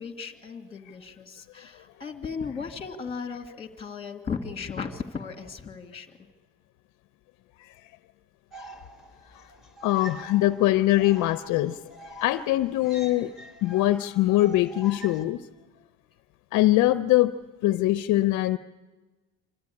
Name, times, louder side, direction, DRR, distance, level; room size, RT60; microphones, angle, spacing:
voice 1, 0.0-6.1, left 5 dB, 15° left, 5 dB, 2.0 m, -36 dB
sound 1, 8.5-15.2, left 1 dB, ahead, 1.7 m, -45 dB
voice 2, 9.8-11.8 12.2-13.3 13.6-15.4 16.5-17.3 17.6-18.6, left 16 dB, 60° left, 12 dB, 0.6 m, -22 dB
26.0 x 13.0 x 9.8 m, 1.3 s
cardioid pair, 145°, 34 cm